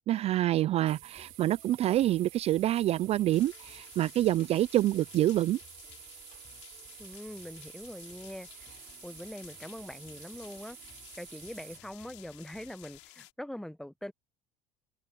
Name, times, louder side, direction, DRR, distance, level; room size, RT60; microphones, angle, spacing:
voice 1, 0.0-5.6, right 14 dB, 45° right, 0.4 m, -27 dB
sound 1, 0.6-13.1, left 6 dB, 35° left, 5.8 m, -61 dB
sound 2, 0.9-11.8, right 20 dB, 70° right, 4.0 m, -51 dB
sound 3, 3.3-13.3, left 21 dB, 90° left, 6.4 m, -54 dB
voice 2, 7.0-8.8 9.0-10.8 11.2-14.1, left 1 dB, 5° left, 1.3 m, -43 dB
supercardioid pair, 95°, 15 cm